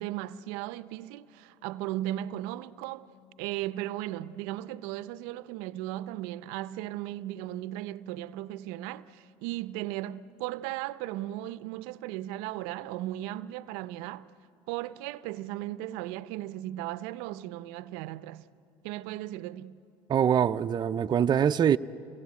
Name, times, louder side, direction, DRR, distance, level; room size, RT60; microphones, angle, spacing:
voice 1, 0.0-3.1 3.4-14.3 14.7-18.5 18.8-19.8, right 14 dB, 80° right, 0.6 m, -36 dB
voice 2, 20.1-21.8, right 8 dB, 35° right, 0.5 m, -24 dB
27.5 x 18.5 x 8.3 m
supercardioid pair, 95°, 13 cm